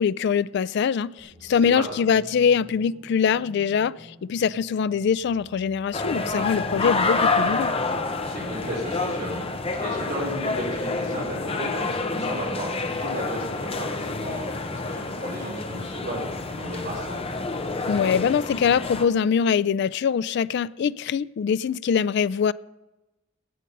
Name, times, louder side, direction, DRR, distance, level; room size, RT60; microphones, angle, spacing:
voice 1, 0.0-7.7 17.9-22.5, left 7 dB, 60° left, 0.3 m, -23 dB
sound 1, 1.2-18.8, equal, 30° right, 3.1 m, -49 dB
sound 2, 5.9-19.0, left 3 dB, 30° left, 0.8 m, -28 dB
voice 2, 8.2-9.4 9.8-17.3, equal, 60° right, 4.0 m, -34 dB
18.0 x 6.4 x 5.4 m
head